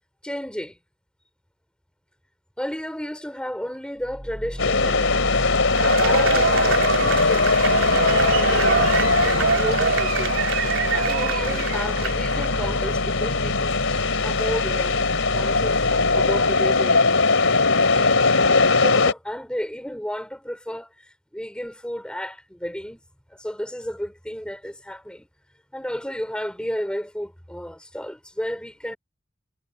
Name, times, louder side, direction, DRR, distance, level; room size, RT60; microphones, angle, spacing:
voice 1, 0.2-0.8 2.6-5.2 5.7-10.4 10.9-15.0 15.3-17.2 17.9-23.0 23.3-25.3 25.7-29.0, equal, 5° left, 4.2 m, -33 dB
sound 1, 4.0-17.1, equal, 10° right, 7.9 m, -33 dB
sound 2, 4.6-19.1, left 3 dB, 85° left, 3.4 m, -21 dB
Cheering / Applause / Crowd, 5.7-12.5, right 5 dB, 80° right, 3.4 m, -24 dB
head